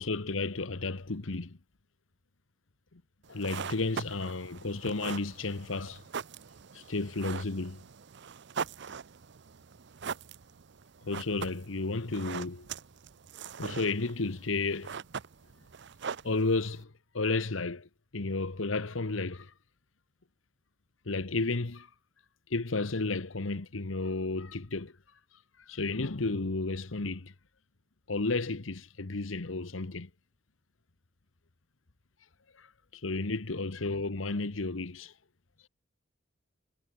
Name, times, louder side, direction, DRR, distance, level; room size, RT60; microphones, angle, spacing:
voice 1, 0.0-1.6 2.9-3.0 3.3-6.0 6.7-7.8 11.0-12.7 13.6-15.0 16.2-19.5 21.1-21.9 22.5-24.9 25.7-27.3 28.1-30.1 32.9-35.1, left 3 dB, 85° left, 1.2 m, -32 dB
sound 1, 3.2-16.8, right 6 dB, 60° right, 0.6 m, -42 dB
head